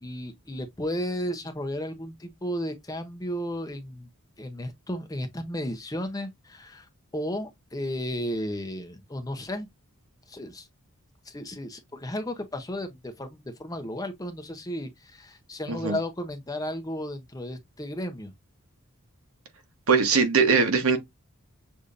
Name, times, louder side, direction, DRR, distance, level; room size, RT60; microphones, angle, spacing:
voice 1, 0.0-4.1 4.4-6.9 7.1-9.7 10.3-10.7 11.3-18.3, equal, 15° left, 0.7 m, -34 dB
voice 2, 19.9-21.0, right 5 dB, 75° right, 1.1 m, -21 dB
6.6 x 2.7 x 2.5 m
head